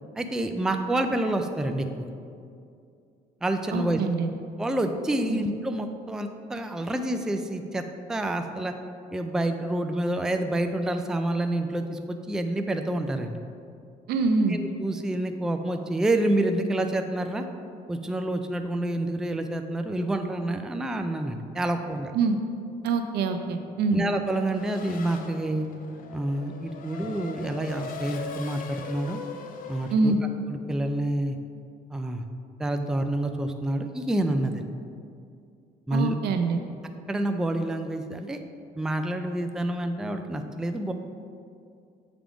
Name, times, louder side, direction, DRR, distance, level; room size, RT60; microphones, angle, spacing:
voice 1, 0.2-2.1 3.4-4.0 4.6-7.8 8.1-8.7 9.1-13.4 14.5-17.5 17.9-22.1 23.9-25.7 26.1-29.2 29.7-30.1 30.5-31.4 31.9-32.2 32.6-34.6 35.9-36.2 37.1-38.4 38.8-40.9, right 1 dB, 5° right, 6 dB, 0.3 m, -28 dB
voice 2, 3.7-4.3 5.3-5.4 14.1-14.6 22.1-22.4 22.8-24.0 29.9-30.2 35.9-36.6, right 4 dB, 70° right, 6 dB, 0.6 m, -24 dB
Race car auto racing / Accelerating revving vroom, 24.3-30.0, left 5 dB, 55° left, 0.6 m, -40 dB
7.4 x 3.5 x 4.9 m, 2.4 s
cardioid pair, 110°, 17 cm